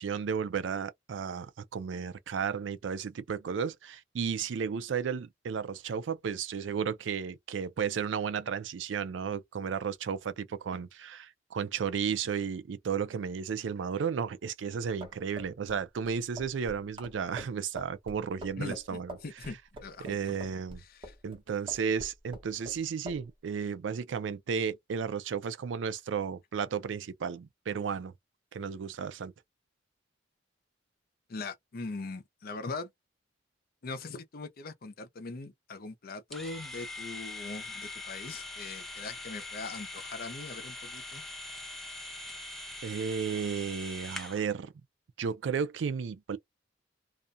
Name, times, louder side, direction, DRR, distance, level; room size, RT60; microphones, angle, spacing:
voice 1, 0.0-19.2 20.0-20.8 21.2-28.1 28.5-29.3 42.8-44.7 45.2-46.4, right 6 dB, 90° right, 0.4 m, -33 dB
sound 1, 15.0-21.4 21.7-22.8 23.1-23.2, right 1 dB, 30° right, 1.0 m, -45 dB
voice 2, 18.6-20.4 20.8-21.1 31.3-32.9 33.8-41.2, left 3 dB, 55° left, 0.6 m, -41 dB
sound 2, 36.3-44.5, left 2 dB, ahead, 0.4 m, -42 dB
2.4 x 2.2 x 2.6 m
head